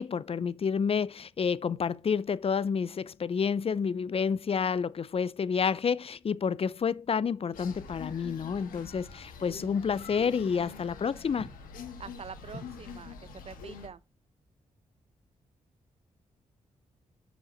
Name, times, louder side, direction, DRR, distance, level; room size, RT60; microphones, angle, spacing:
voice 1, 0.0-11.5, left 6 dB, 45° left, 0.5 m, -29 dB
sound 1, 7.5-13.9, left 5 dB, 85° left, 1.4 m, -45 dB
voice 2, 12.0-14.0, right 6 dB, 45° right, 0.6 m, -45 dB
6.2 x 5.0 x 4.3 m
supercardioid pair, 50°, 14 cm